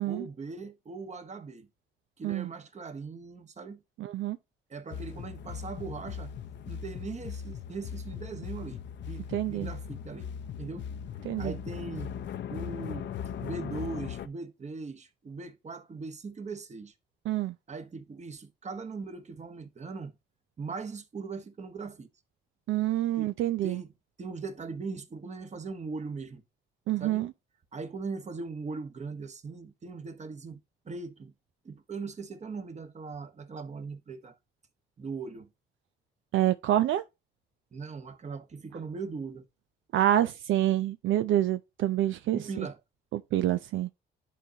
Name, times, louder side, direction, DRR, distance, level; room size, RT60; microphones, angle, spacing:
voice 1, 0.0-1.7 2.2-3.8 4.7-6.3 6.7-10.3 10.6-10.9 11.4-12.1 12.5-16.9 17.7-20.2 20.6-22.1 23.2-23.3 23.6-23.9 24.2-26.4 27.0-27.3 27.7-31.3 31.6-34.4 35.0-35.5 37.7-39.5 42.3-42.8, right 4 dB, 35° right, 1.3 m, -40 dB
voice 2, 4.0-4.4 9.3-9.7 11.2-11.5 17.3-17.5 22.7-23.8 26.9-27.3 36.3-37.0 39.9-42.7 43.1-43.9, right 13 dB, 75° right, 0.5 m, -27 dB
sound 1, 4.9-14.3, left 8 dB, 65° left, 0.7 m, -39 dB
11.0 x 3.9 x 2.8 m
cardioid pair, 90°, 20 cm